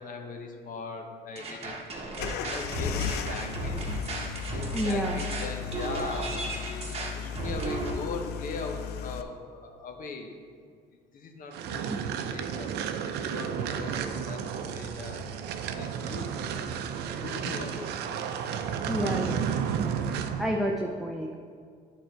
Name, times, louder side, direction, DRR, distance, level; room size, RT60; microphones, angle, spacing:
voice 1, 0.0-1.7 2.2-3.9 4.5-10.3 11.1-11.9 12.3-12.8 13.3-14.4 14.7-15.4 15.8-16.6 17.2-17.9, left 3 dB, 55° left, 4 dB, 0.9 m, -40 dB
sound 1, 1.4-7.9, right 3 dB, 35° right, 1.1 m, -35 dB
sound 2, 2.2-9.2, left 7 dB, 75° left, 0.4 m, -35 dB
voice 2, 4.7-5.2 18.9-19.5 20.2-21.3, equal, ahead, 0 dB, 0.5 m, -30 dB
sound 3, 11.5-20.5, right 7 dB, 75° right, 0.5 m, -32 dB
9.1 x 3.8 x 4.5 m, 2.1 s
cardioid pair, 110°, 17 cm